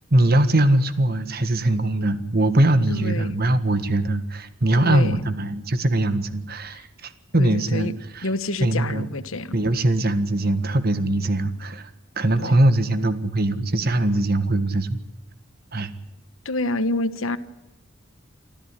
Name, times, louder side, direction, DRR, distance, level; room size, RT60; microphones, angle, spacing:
voice 1, 0.1-7.9 8.1-8.2 8.6-9.1 9.5-11.9 12.2-15.0 15.7-15.9, right 1 dB, 50° right, 11 dB, 1.6 m, -21 dB
voice 2, 2.9-3.4 4.7-5.2 7.4-7.9 8.2-9.5 12.4-12.5 16.4-17.4, left 2 dB, 85° left, 12 dB, 1.3 m, -27 dB
25.5 x 14.0 x 10.0 m, 1.0 s
head